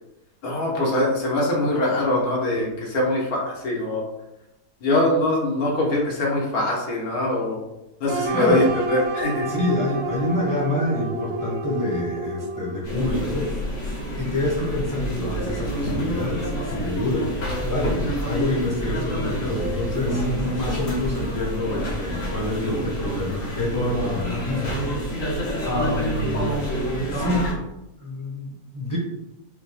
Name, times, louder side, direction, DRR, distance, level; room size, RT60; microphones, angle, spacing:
voice 1, 0.4-4.0 4.8-7.6 8.0-9.4, left 1 dB, 80° left, -2 dB, 1.5 m, -23 dB
sound 1, 8.1-13.0, right 2 dB, 60° right, 0.7 m, -30 dB
voice 2, 8.3-8.6 9.1-13.6 14.2-24.8 25.6-26.5 27.1-27.6 28.0-29.0, left 1 dB, 15° left, -4 dB, 0.8 m, -27 dB
sound 2, 12.8-27.5, equal, 60° left, 1.8 m, -27 dB
5.4 x 2.2 x 3.4 m, 0.91 s
omnidirectional pair, 1.6 m